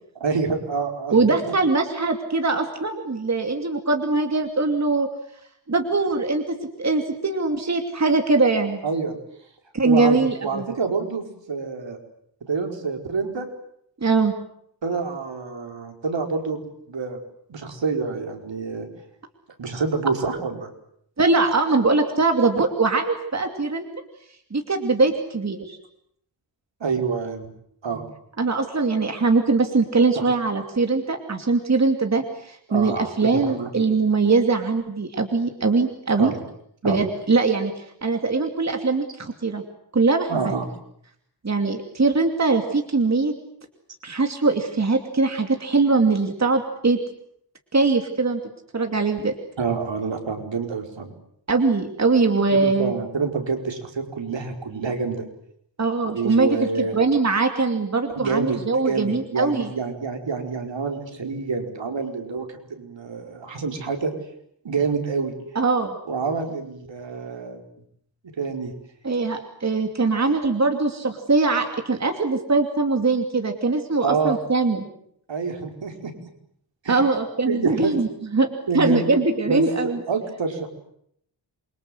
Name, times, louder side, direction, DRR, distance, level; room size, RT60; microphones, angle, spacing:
voice 1, 0.2-1.2 8.8-9.2 9.8-12.0 12.5-13.5 14.8-17.2 17.5-18.9 19.6-20.7 26.8-27.5 27.8-28.1 30.2-30.3 32.7-33.7 36.2-36.4 36.8-37.0 40.3-40.7 49.6-51.1 52.5-55.3 56.0-57.0 58.2-64.1 64.6-65.3 66.1-67.6 68.4-68.7 74.0-74.4 75.3-76.1 76.8-77.0 77.5-78.0 78.7-79.1 79.5-79.6 80.1-80.7, right 4 dB, 75° right, 4 dB, 5.1 m, -27 dB
voice 2, 1.1-5.1 5.7-8.8 9.7-10.7 14.0-14.3 21.2-23.9 24.5-25.8 28.4-36.3 36.8-39.6 39.9-40.5 41.4-43.3 44.0-47.0 47.7-48.4 48.7-49.3 51.5-52.9 55.8-59.7 65.5-66.0 69.0-74.8 76.9-80.0, right 3 dB, 35° right, 5 dB, 2.7 m, -22 dB
28.0 x 24.0 x 7.9 m, 0.70 s
wide cardioid pair, 135°, 45 cm